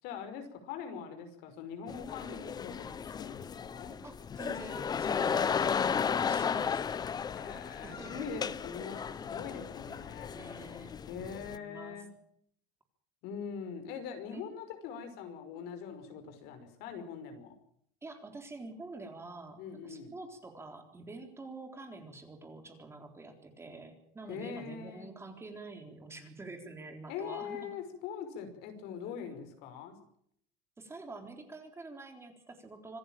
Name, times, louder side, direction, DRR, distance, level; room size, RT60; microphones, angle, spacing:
voice 1, 0.0-4.0 7.3-10.3 11.1-12.1 13.2-17.5 19.6-20.1 24.3-25.1 27.1-30.0, left 7 dB, 65° left, 7 dB, 5.5 m, -42 dB
sound 1, 1.9-11.6, left 7 dB, 25° left, 0.8 m, -34 dB
voice 2, 4.0-7.0 7.8-8.4 9.3-9.5 10.3-10.9 11.4-12.1 14.3-14.4 18.0-27.8 29.3-29.5 30.8-33.0, right 3 dB, 15° right, 5 dB, 3.8 m, -47 dB
26.0 x 14.0 x 9.1 m, 0.68 s
cardioid pair, 140°, 18 cm